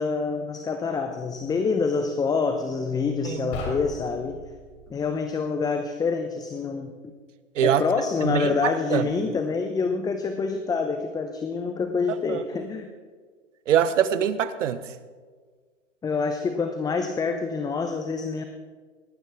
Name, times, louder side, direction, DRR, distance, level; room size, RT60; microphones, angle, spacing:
voice 1, 0.0-4.4 4.9-7.1 7.6-12.9 16.0-18.4, left 4 dB, 10° left, 0.7 m, -27 dB
sound 1, 3.4-5.0, left 2 dB, 50° left, 4.3 m, -37 dB
voice 2, 8.2-9.1 12.3-12.4 13.7-14.8, right 9 dB, 75° right, 1.1 m, -23 dB
18.5 x 13.0 x 3.5 m
hypercardioid pair, 120°, 38 cm